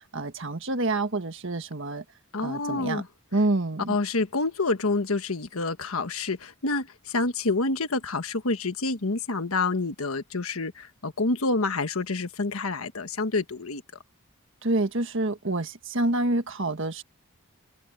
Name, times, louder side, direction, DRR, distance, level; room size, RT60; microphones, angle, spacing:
voice 1, 0.1-2.0 2.4-3.0 3.3-3.9 14.6-17.0, right 2 dB, 60° right, 1.6 m, -27 dB
voice 2, 2.3-3.1 3.9-13.8, left 3 dB, 85° left, 1.4 m, -28 dB
head